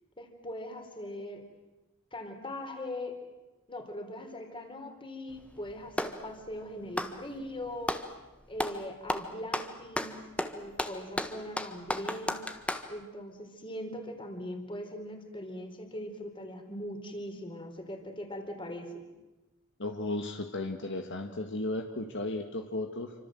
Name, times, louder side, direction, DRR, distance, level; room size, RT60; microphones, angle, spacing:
voice 1, 0.2-1.5 2.1-3.2 3.7-8.0 8.5-10.2 10.5-12.4 12.9-19.0, left 1 dB, 25° left, 5 dB, 4.1 m, -40 dB
Clapping, 5.3-6.2 6.8-8.1 8.6-8.8 9.1-12.9, left 1 dB, 5° left, 1.5 m, -34 dB
voice 2, 19.8-23.1, left 2 dB, 60° left, 5 dB, 1.8 m, -35 dB
28.0 x 25.5 x 7.8 m, 1.1 s
head